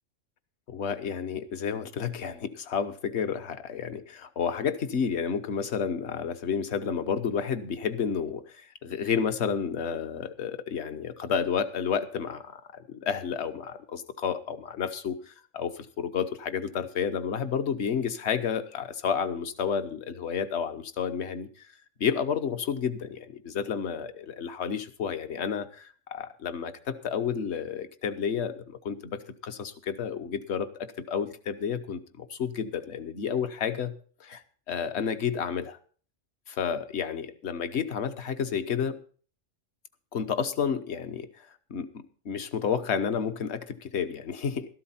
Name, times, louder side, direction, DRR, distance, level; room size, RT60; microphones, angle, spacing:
voice 1, 0.7-21.7 22.0-34.4 34.7-35.8 36.5-39.0 40.1-44.8, left 7 dB, 60° left, 10 dB, 1.2 m, -31 dB
13.0 x 12.0 x 4.3 m, 0.42 s
omnidirectional pair, 1.3 m